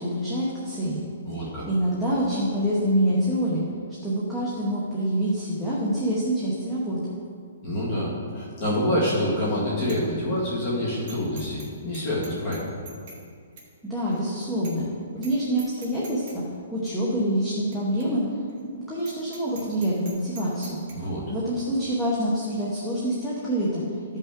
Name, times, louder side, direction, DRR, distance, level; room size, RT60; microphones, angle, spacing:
voice 1, 0.0-1.1 1.7-3.6 4.0-7.0 13.9-14.8 15.1-16.4 16.7-18.2 18.9-20.8 21.3-23.8, equal, 5° left, -9 dB, 0.9 m, -26 dB
voice 2, 1.3-1.7 7.6-12.6 20.9-21.2, left 1 dB, 25° left, -7 dB, 1.8 m, -27 dB
Bicycle bell, 9.1-9.4 9.8-10.0 10.4-10.5 11.1-11.7 11.9-13.2 13.6-13.7 14.1-14.2 14.6-14.9 15.2-15.3 15.6-16.4 16.8-16.9 17.7-17.8 18.0-18.1 18.5-18.6 19.0-20.9, right 4 dB, 30° right, 1.5 m, -44 dB
13.5 x 5.5 x 3.6 m, 2.2 s
hypercardioid pair, 180°, 0 cm